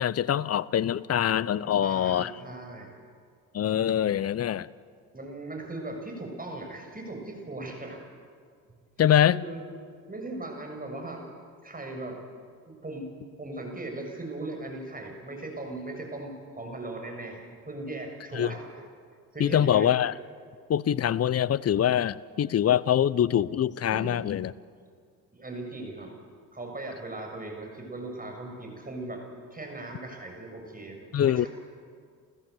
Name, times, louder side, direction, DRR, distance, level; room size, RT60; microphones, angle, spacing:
voice 1, 0.0-2.3 3.5-4.7 9.0-9.4 18.3-18.5 19.4-20.1 20.7-24.5 31.1-31.5, left 10 dB, 40° left, 21 dB, 0.7 m, -24 dB
voice 2, 1.6-3.0 5.1-8.0 9.3-9.6 10.1-11.3 11.6-12.2 12.7-18.8 19.3-19.9 23.9-24.2 25.3-26.1 26.5-29.2 29.5-31.5, right 2 dB, 20° right, 2 dB, 6.8 m, -38 dB
29.5 x 14.5 x 8.1 m, 2.1 s
hypercardioid pair, 55°, 40 cm